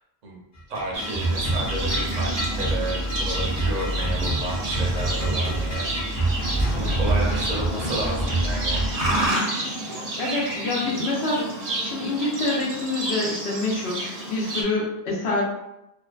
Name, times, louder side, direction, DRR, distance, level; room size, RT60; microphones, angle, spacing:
sound 1, 0.5-9.3, right 1 dB, 55° left, 0.7 m, -26 dB
voice 1, 0.7-5.9 6.7-8.8, right 1 dB, 50° right, -2 dB, 0.6 m, -32 dB
Livestock farm animals working animals, 0.9-14.6, right 1 dB, 85° right, 0.9 m, -30 dB
sound 2, 2.0-2.4 4.1-5.6 6.5-7.0, equal, 10° right, 0.7 m, -36 dB
voice 2, 10.2-11.5 11.8-15.4, left 2 dB, 75° left, -4 dB, 1.0 m, -26 dB
2.5 x 2.2 x 2.3 m, 0.89 s
omnidirectional pair, 1.1 m